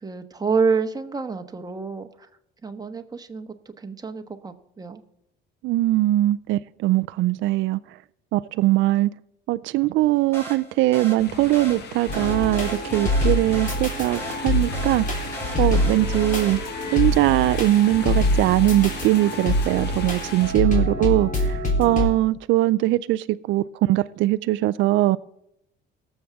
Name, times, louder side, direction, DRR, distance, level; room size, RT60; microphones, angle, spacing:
voice 1, 0.0-2.1 2.6-5.0, right 5 dB, 20° right, 1.2 m, -27 dB
voice 2, 5.6-7.8 8.3-9.1 9.5-15.3 15.6-16.6 16.9-25.2, right 16 dB, 75° right, 0.4 m, -21 dB
sound 1, 10.3-16.9, right 1 dB, 10° left, 4.7 m, -38 dB
sound 2, 11.2-20.5, left 6 dB, 60° left, 1.3 m, -38 dB
sound 3, 12.1-22.1, left 1 dB, 40° left, 3.4 m, -25 dB
18.5 x 7.3 x 3.5 m
cardioid pair, 110°, 20 cm